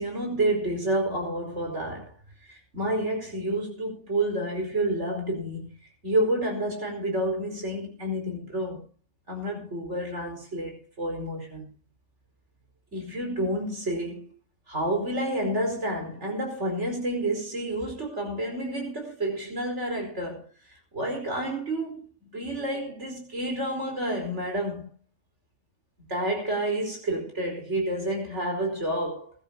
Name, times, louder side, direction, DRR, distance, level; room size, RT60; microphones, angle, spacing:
voice 1, 0.0-2.1 2.5-5.8 6.0-8.8 9.3-11.7 12.9-14.3 14.7-20.4 20.9-24.9 26.0-29.3, right 1 dB, 55° right, 5.3 m, -29 dB
22.0 x 12.5 x 2.8 m
omnidirectional pair, 1.5 m